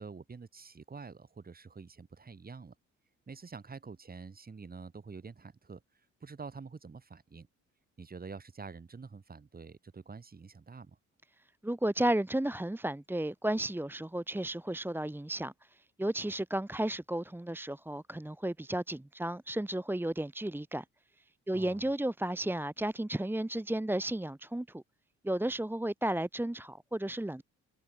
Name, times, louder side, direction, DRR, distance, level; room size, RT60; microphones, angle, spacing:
voice 1, 0.0-2.7 3.3-7.5 8.0-11.0 21.5-21.9, right 4 dB, 30° right, 3.9 m, -47 dB
voice 2, 11.6-20.8 21.5-24.8 25.2-27.4, right 1 dB, 5° right, 1.6 m, -33 dB
cardioid pair, 90°, 30 cm